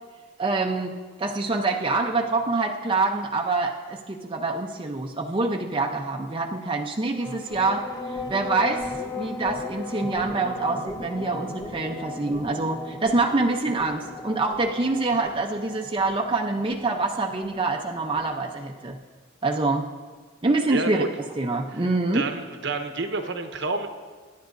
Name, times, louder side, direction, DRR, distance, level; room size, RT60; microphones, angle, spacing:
voice 1, 0.4-8.9 9.1-19.0 19.4-19.9 20.4-21.0 21.4-22.3, right 3 dB, 25° right, 1 dB, 0.6 m, -26 dB
sound 1, 7.1-19.0, left 3 dB, 20° left, 0.6 m, -37 dB
voice 2, 20.7-21.1 21.7-21.8 22.1-23.9, right 3 dB, 60° right, 6 dB, 1.0 m, -29 dB
23.5 x 10.5 x 2.6 m, 1.4 s
head